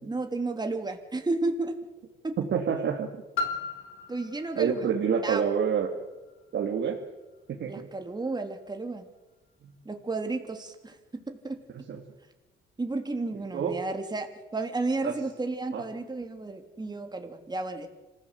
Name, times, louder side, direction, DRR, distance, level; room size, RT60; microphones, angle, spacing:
voice 1, 0.0-1.8 2.2-2.4 4.1-4.9 5.2-5.4 7.7-9.0 9.8-11.6 12.8-17.9, right 3 dB, 20° right, 5 dB, 3.3 m, -32 dB
voice 2, 2.4-3.1 4.6-6.0 6.5-7.0 7.5-7.9 9.6-9.7 11.7-12.0 13.5-13.8 15.0-15.1 15.7-15.8, right 7 dB, 65° right, 0 dB, 2.8 m, -28 dB
Piano, 3.4-8.8 9.5-9.6, left 4 dB, 75° left, 3.6 m, -39 dB
26.5 x 16.0 x 8.3 m, 1.1 s
cardioid pair, 90°, 20 cm